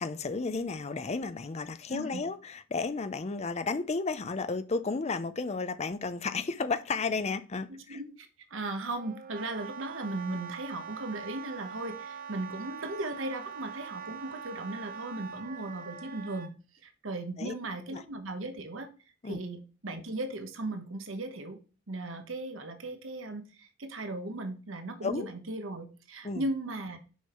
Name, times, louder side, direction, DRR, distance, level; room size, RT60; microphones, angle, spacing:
voice 1, 0.0-8.0 17.4-17.5 17.9-18.0 19.2-19.4 25.0-25.3 26.2-26.5, left 4 dB, 30° left, 0.5 m, -33 dB
voice 2, 1.9-2.2 7.9-18.9 19.2-21.6 21.9-27.0, right 2 dB, 70° right, 1.1 m, -37 dB
Wind instrument woodwind instrument, 8.9-16.5, right 6 dB, 45° right, 0.6 m, -43 dB
6.2 x 5.4 x 4.3 m
head